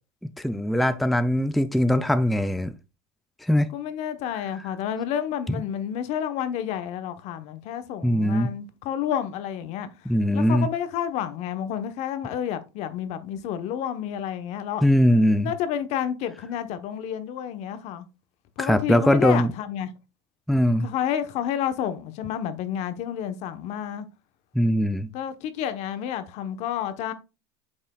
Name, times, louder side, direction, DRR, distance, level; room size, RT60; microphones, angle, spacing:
voice 1, 0.4-2.7 3.4-3.7 8.0-8.5 10.1-10.7 14.8-15.5 18.6-19.5 20.5-20.9 24.5-25.1, equal, ahead, 0.4 m, -21 dB
voice 2, 3.7-9.9 10.3-14.8 15.4-18.1 18.6-19.9 20.8-24.1 25.1-27.1, left 9 dB, 55° left, 1.0 m, -30 dB
8.5 x 5.5 x 2.3 m
supercardioid pair, 105°, 13 cm